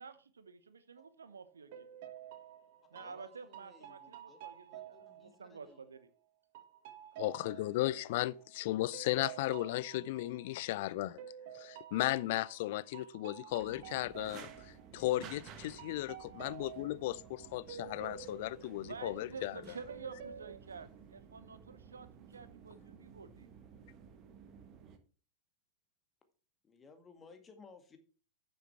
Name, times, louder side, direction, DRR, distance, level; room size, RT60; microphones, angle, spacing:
voice 1, 0.0-1.9 2.9-6.1 18.7-23.5, right 5 dB, 70° right, 1.0 m, -50 dB
sound 1, 1.0-1.3 1.7-6.0 6.5-10.8 11.2-15.4 15.8-19.5 19.9-20.6, right 10 dB, 50° right, 1.5 m, -51 dB
voice 2, 2.9-4.4 4.7-5.8 7.2-7.8 10.5-10.9 13.9-14.0 14.3-14.5 16.5-16.7 17.4-17.6 26.6-28.0, left 4 dB, 20° left, 1.8 m, -60 dB
voice 3, 7.2-11.2 11.5-19.6, left 16 dB, 50° left, 0.4 m, -35 dB
sound 2, 13.5-25.0, right 7 dB, 35° right, 1.3 m, -55 dB
9.5 x 6.9 x 4.6 m
figure-of-eight pair, 90°, 0 cm